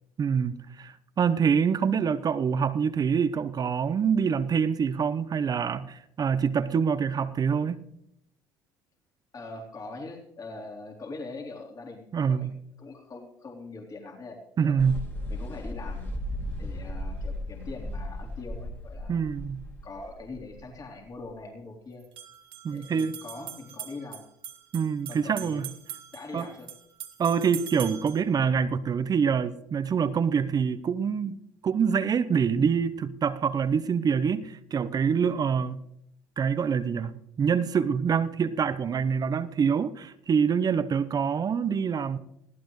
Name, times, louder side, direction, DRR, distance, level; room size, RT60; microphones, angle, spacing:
voice 1, 0.2-7.8 12.1-12.5 14.6-15.0 19.1-19.6 22.6-23.2 24.7-25.6 26.3-26.5 27.2-31.4 31.6-35.8 36.4-42.2, right 6 dB, 40° right, 0.8 m, -25 dB
voice 2, 9.3-12.5 12.8-14.8 15.3-16.1 16.6-19.2 19.8-22.1 22.7-24.3 25.1-25.7 26.1-26.7, left 3 dB, 40° left, 3.7 m, -42 dB
sound 1, 14.8-21.4, left 1 dB, 20° left, 2.4 m, -36 dB
sound 2, 20.4-20.5 22.0-28.3, right 10 dB, 60° right, 2.0 m, -42 dB
20.5 x 15.5 x 3.2 m
hypercardioid pair, 65°, 10 cm